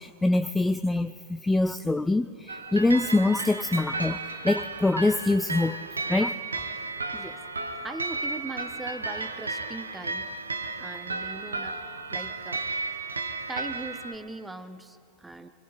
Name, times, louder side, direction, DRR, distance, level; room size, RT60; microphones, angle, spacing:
voice 1, 0.0-4.2 4.4-5.8 6.1-6.3, left 2 dB, 10° left, 11 dB, 0.4 m, -24 dB
sound 1, 2.5-14.1, right 3 dB, 80° right, 1.3 m, -33 dB
voice 2, 7.8-10.3 10.8-11.8 12.1-12.6 13.5-15.5, right 2 dB, 10° right, 9 dB, 1.2 m, -40 dB
25.0 x 24.0 x 4.3 m, 2.4 s
figure-of-eight pair, 90°, 0 cm